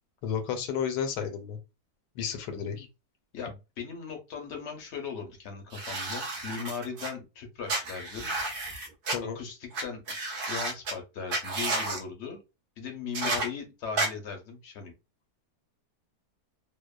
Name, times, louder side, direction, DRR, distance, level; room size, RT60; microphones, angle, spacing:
voice 1, 0.2-1.6 2.2-2.9 9.1-9.4 13.2-13.5, left 7 dB, 85° left, 7 dB, 1.2 m, -32 dB
voice 2, 3.3-8.3 9.3-10.0 10.5-12.4 12.8-14.9, left 6 dB, 60° left, 3 dB, 0.7 m, -38 dB
sound 1, 5.7-7.1 7.7-9.2 9.7-9.8 10.1-10.9 11.3-12.0 13.1-13.5 14.0-14.1, right 2 dB, 85° right, 0.4 m, -31 dB
2.8 x 2.0 x 2.2 m, 0.27 s
omnidirectional pair, 1.8 m